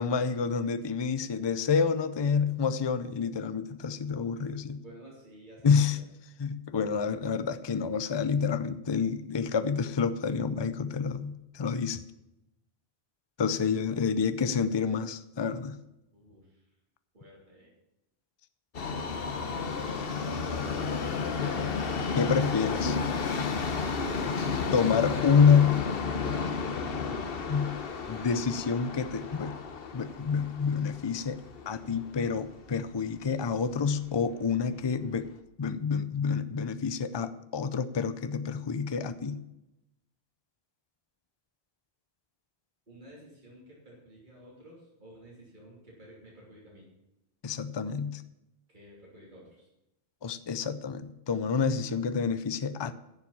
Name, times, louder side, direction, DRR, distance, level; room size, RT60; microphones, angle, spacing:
voice 1, 0.0-4.8 5.6-6.0 6.4-12.0 13.4-15.8 22.1-23.0 24.7-25.7 27.5-27.7 28.1-29.6 29.9-31.4 31.7-35.3 35.6-39.4 47.4-48.2 50.2-52.9, left 6 dB, 30° left, 13 dB, 0.5 m, -28 dB
voice 2, 4.8-6.0 16.1-16.7 17.1-17.7 42.9-46.9 48.7-49.7, right 1 dB, 50° right, -4 dB, 3.2 m, -53 dB
Subway metro underground, 18.7-32.9 33.2-33.3 34.1-34.2 34.5-34.6 35.2-35.3, left 5 dB, 65° left, 1.2 m, -32 dB
10.5 x 7.3 x 8.6 m, 0.90 s
omnidirectional pair, 1.1 m